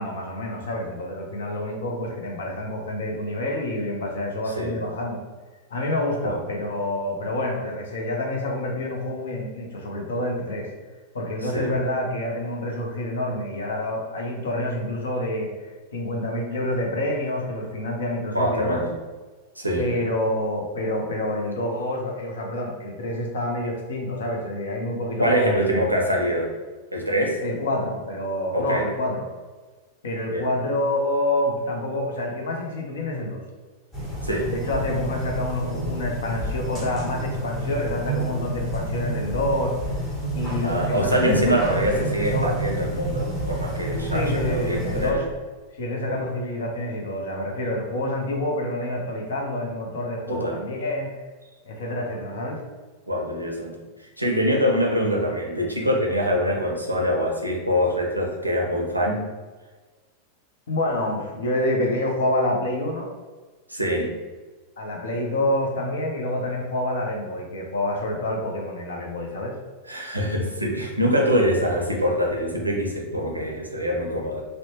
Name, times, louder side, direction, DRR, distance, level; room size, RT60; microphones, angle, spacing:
voice 1, 0.0-5.2 5.7-10.7 11.1-18.9 19.8-25.8 27.4-29.3 30.0-33.4 34.5-39.7 40.3-42.5 44.1-45.3 45.7-51.1 51.6-52.6 60.7-63.1 64.8-69.5, left 1 dB, 65° left, 1 dB, 0.6 m, -27 dB
voice 2, 18.3-18.9 19.6-19.8 25.2-26.5 26.9-27.4 28.5-28.8 30.3-30.5 34.2-34.5 40.6-45.2 46.1-46.2 50.3-50.6 53.1-53.8 54.2-59.3 63.7-64.1 69.9-74.4, equal, 85° right, 0 dB, 0.5 m, -24 dB
sound 1, 33.9-45.1, right 1 dB, 20° left, 0.9 m, -29 dB
2.7 x 2.1 x 2.9 m, 1.4 s
figure-of-eight pair, 90°, 0 cm